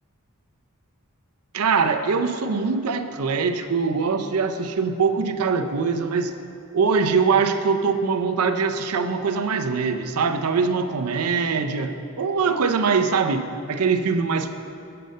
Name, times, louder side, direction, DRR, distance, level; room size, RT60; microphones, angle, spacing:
voice 1, 1.5-6.4 6.7-14.5, right 5 dB, 80° right, 7 dB, 0.5 m, -22 dB
7.6 x 6.7 x 6.4 m, 2.6 s
head